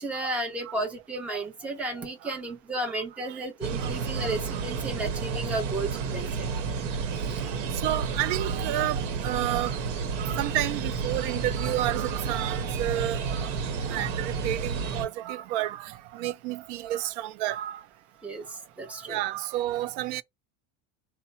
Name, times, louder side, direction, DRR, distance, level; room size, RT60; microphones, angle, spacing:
voice 1, 0.0-6.5 7.2-7.4 18.2-19.2, right 2 dB, 5° right, 0.6 m, -33 dB
voice 2, 2.0-2.4 2.8-3.4 3.8-4.8 6.5-6.6 7.4-9.8 10.1-13.5 13.8-17.8 19.1-20.2, right 14 dB, 70° right, 0.5 m, -31 dB
sound 1, 3.6-15.1, right 5 dB, 90° right, 1.0 m, -31 dB
4.2 x 2.1 x 3.9 m
cardioid pair, 170°, 36 cm